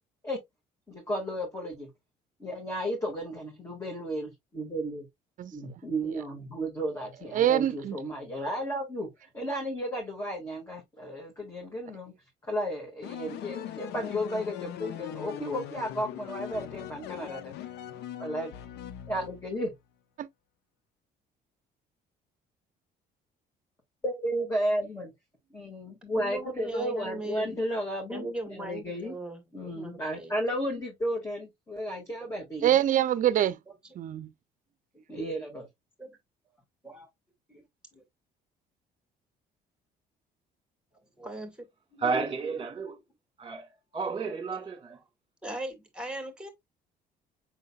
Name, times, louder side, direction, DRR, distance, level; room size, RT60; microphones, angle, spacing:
voice 1, 0.9-1.9 2.4-5.1 5.5-9.1 9.3-12.1 12.4-17.5 18.2-18.5 19.1-19.7 24.0-25.1 25.5-29.2 29.5-32.8 35.1-35.7, equal, 15° left, 2.1 m, -33 dB
voice 2, 7.3-8.0 20.2-20.3 32.6-33.6 34.0-34.3, right 11 dB, 50° right, 0.6 m, -24 dB
sound 1, 13.0-19.7, left 11 dB, 80° left, 0.6 m, -41 dB
voice 3, 26.1-27.6 28.1-30.3 33.8-34.0 36.0-36.1 36.8-37.1 37.5-37.6 37.9-38.0 41.2-41.6 41.9-42.2 44.9-45.0 45.4-46.5, right 2 dB, 5° right, 2.1 m, -39 dB
voice 4, 42.0-43.0 43.4-45.0, right 4 dB, 30° right, 1.7 m, -32 dB
5.8 x 3.9 x 2.4 m
cardioid pair, 110°, 17 cm